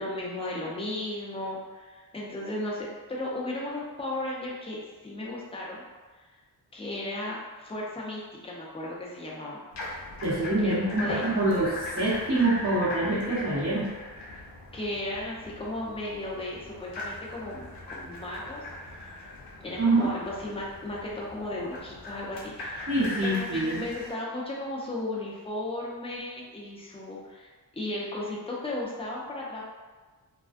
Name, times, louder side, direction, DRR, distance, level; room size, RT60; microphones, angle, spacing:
voice 1, 0.0-5.8 6.2-6.3 6.7-9.6 10.6-11.2 14.7-19.3 19.6-22.9 23.2-29.6, left 1 dB, 15° left, -4 dB, 0.5 m, -35 dB
sound 1, 9.7-24.1, left 1 dB, 80° left, 0.7 m, -39 dB
voice 2, 10.2-13.9 19.8-20.1 22.9-23.8, right 2 dB, 35° right, -13 dB, 0.9 m, -25 dB
2.3 x 2.3 x 2.4 m, 1.3 s
wide cardioid pair, 90°, 41 cm